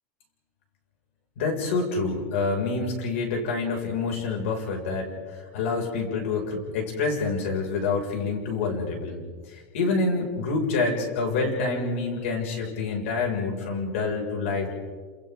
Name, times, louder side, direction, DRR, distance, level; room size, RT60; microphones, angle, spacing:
voice 1, 1.4-9.2 9.5-14.7, left 4 dB, 75° left, 1 dB, 6.5 m, -27 dB
29.5 x 28.0 x 3.9 m, 1.5 s
supercardioid pair, 170°, 7 cm